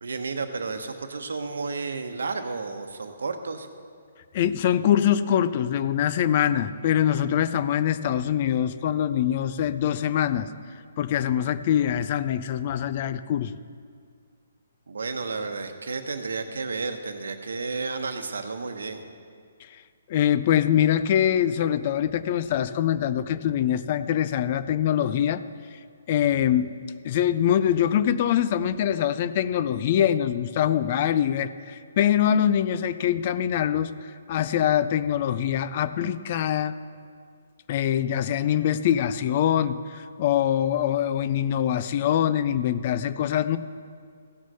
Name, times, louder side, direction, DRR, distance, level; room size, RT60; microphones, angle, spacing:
voice 1, 0.0-3.7 14.9-19.0, right 4 dB, 90° right, 7 dB, 1.1 m, -32 dB
voice 2, 4.3-10.5 11.0-13.5 20.1-25.4 26.1-26.7 27.0-33.9 34.3-36.7 37.7-43.6, left 10 dB, 35° left, 14 dB, 0.3 m, -23 dB
15.5 x 6.3 x 5.5 m, 2.1 s
hypercardioid pair, 170°, 0 cm